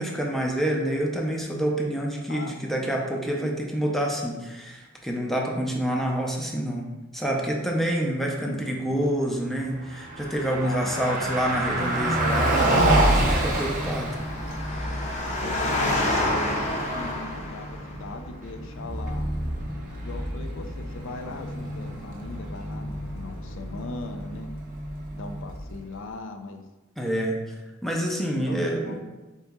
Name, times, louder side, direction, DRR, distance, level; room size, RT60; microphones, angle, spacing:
voice 1, 0.0-14.1 27.0-27.4 27.8-29.0, right 1 dB, ahead, -1 dB, 0.5 m, -27 dB
voice 2, 8.5-9.0 10.6-11.4 15.4-19.3 20.0-24.5 25.2-26.6 28.0-28.1 28.5-29.0, left 3 dB, 65° left, 6 dB, 0.4 m, -39 dB
Musical instrument, 9.6-24.4, equal, 85° left, 1.1 m, -46 dB
Car passing by, 9.8-25.9, right 1 dB, 40° right, 0.8 m, -28 dB
Engine, 12.5-18.0, left 1 dB, 35° left, 0.7 m, -29 dB
4.0 x 3.6 x 3.6 m, 1.2 s
head